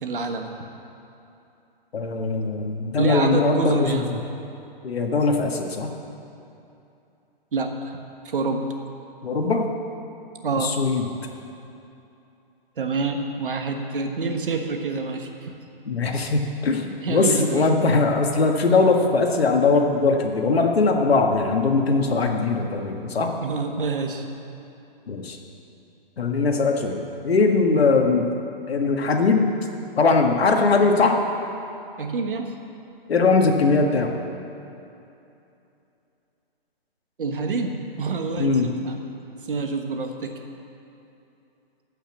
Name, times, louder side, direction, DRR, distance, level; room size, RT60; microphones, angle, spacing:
voice 1, 0.0-0.5 3.0-4.1 7.5-8.0 8.3-8.6 10.4-10.8 12.8-15.5 17.0-17.6 23.4-24.2 32.0-32.6 37.2-39.0 39.5-40.4, right 4 dB, 60° right, 4 dB, 1.3 m, -27 dB
voice 2, 1.9-4.2 4.8-5.9 9.2-9.7 10.6-11.1 15.8-23.3 25.1-25.4 26.2-28.3 28.7-29.5 30.0-31.2 33.1-34.2 38.4-38.7, left 3 dB, 85° left, 3 dB, 1.6 m, -21 dB
14.5 x 5.8 x 7.2 m, 2.8 s
hypercardioid pair, 180°, 30 cm